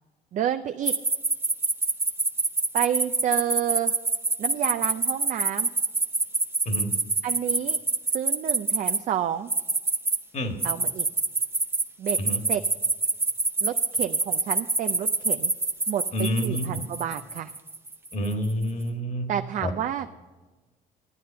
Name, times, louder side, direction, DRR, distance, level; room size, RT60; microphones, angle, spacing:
voice 1, 0.3-0.9 2.7-3.9 4.4-5.7 7.2-7.8 8.1-9.5 10.6-11.1 12.0-12.2 12.5-12.6 13.6-15.5 15.9-17.5 19.3-20.1, right 10 dB, 50° right, 7 dB, 0.4 m, -29 dB
sound 1, 0.9-9.0 9.5-10.2 10.6-18.5, right 3 dB, 15° right, 0.7 m, -25 dB
voice 2, 16.1-16.8 18.1-19.3 19.6-19.7, equal, 45° left, 5 dB, 1.7 m, -28 dB
11.5 x 9.3 x 5.5 m, 1.2 s
cardioid pair, 110°, 17 cm